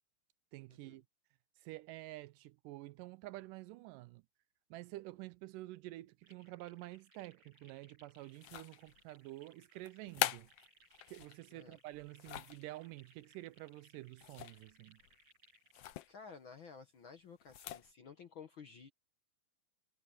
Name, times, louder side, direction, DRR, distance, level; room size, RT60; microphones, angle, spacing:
voice 1, 0.5-1.0 1.6-4.2 4.7-10.5 11.1-15.0, right 18 dB, 90° right, 2.2 m, -49 dB
sound 1, 6.2-15.9, right 2 dB, 40° right, 8.6 m, -67 dB
sound 2, 8.3-9.0 9.8-11.4 11.9-12.6 14.2-14.7 15.0-15.1 15.7-16.1 17.4-17.9, left 13 dB, 80° left, 1.3 m, -41 dB
voice 2, 16.1-18.9, left 6 dB, 55° left, 1.4 m, -54 dB
omnidirectional pair, 3.8 m